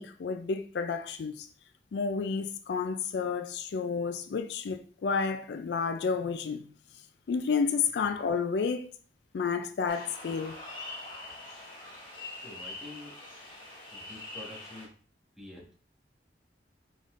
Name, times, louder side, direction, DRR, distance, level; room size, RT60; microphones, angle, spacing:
voice 1, 0.0-1.5 1.9-6.7 7.3-8.9 9.3-10.6, left 5 dB, 65° left, 0.3 m, -31 dB
sound 1, 9.9-14.9, left 2 dB, 30° left, 1.4 m, -44 dB
voice 2, 12.3-13.2 13.9-14.9 15.4-15.7, left 1 dB, 5° right, 1.3 m, -47 dB
5.0 x 4.0 x 2.5 m
head